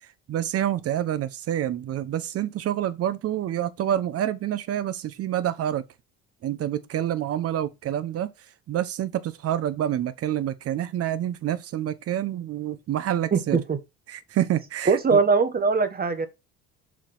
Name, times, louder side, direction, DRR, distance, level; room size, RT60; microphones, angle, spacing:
voice 1, 0.3-5.8 6.4-8.3 8.7-13.6 14.1-15.2, right 11 dB, 50° right, 1.1 m, -27 dB
voice 2, 13.3-13.8 14.9-16.3, right 5 dB, 30° right, 1.4 m, -21 dB
7.4 x 5.0 x 4.0 m
supercardioid pair, 90°, 31 cm